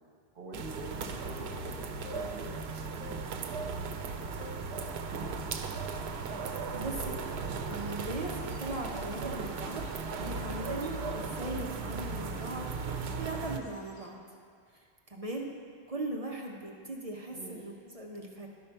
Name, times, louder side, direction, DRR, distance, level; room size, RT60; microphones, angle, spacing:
voice 1, 0.3-2.5 2.9-4.1 17.3-17.7, right 2 dB, 65° right, -2 dB, 1.1 m, -46 dB
sound 1, 0.5-13.6, right 4 dB, 85° right, 0.9 m, -37 dB
sound 2, 2.0-2.6 2.9-4.0 4.4-4.7 5.1-5.3 5.9-6.1 6.4-10.3 10.6-11.1 11.4-11.7 12.0-12.3, left 2 dB, 80° left, 1.6 m, -51 dB
voice 2, 6.7-7.3 7.7-9.8 10.2-14.2 15.1-15.5 15.9-18.5, right 2 dB, 40° right, 0 dB, 0.7 m, -39 dB
sound 3, 6.9-14.1, left 1 dB, 45° left, 1.0 m, -56 dB
11.5 x 5.5 x 4.4 m, 2.1 s
omnidirectional pair, 1.0 m